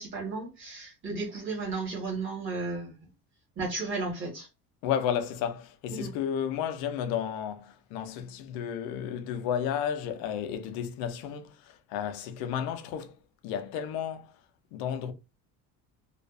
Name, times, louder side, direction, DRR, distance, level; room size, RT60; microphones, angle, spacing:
voice 1, 0.0-3.0 3.6-4.5 5.9-6.1, right 3 dB, 35° right, 1.2 m, -34 dB
voice 2, 4.8-13.1 13.4-14.3 14.7-15.1, left 9 dB, 85° left, 0.6 m, -32 dB
2.4 x 2.3 x 2.4 m
cardioid pair, 170°, 35 cm